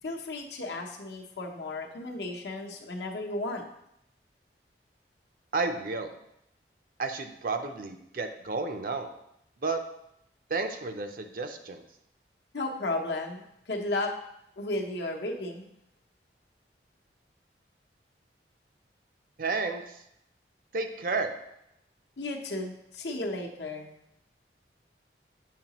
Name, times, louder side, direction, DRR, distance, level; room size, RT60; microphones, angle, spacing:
voice 1, 0.0-3.7 12.5-14.2 14.6-15.7 22.2-23.9, left 2 dB, 75° left, 2 dB, 0.8 m, -34 dB
voice 2, 5.5-6.1 7.0-9.1 9.6-9.8 10.5-11.8 19.4-20.0 20.7-21.3, right 3 dB, 50° right, 6 dB, 0.5 m, -31 dB
7.4 x 4.8 x 2.9 m, 0.79 s
head